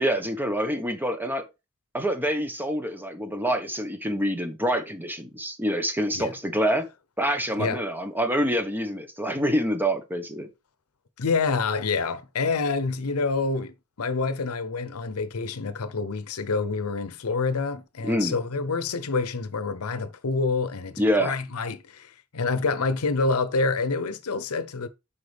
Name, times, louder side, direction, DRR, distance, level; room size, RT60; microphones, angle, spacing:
voice 1, 0.0-1.4 1.9-6.9 7.2-10.5 18.0-18.4 21.0-21.3, equal, 10° right, 1.1 m, -26 dB
voice 2, 11.2-24.9, left 4 dB, 85° left, 0.7 m, -27 dB
7.9 x 5.7 x 3.4 m
head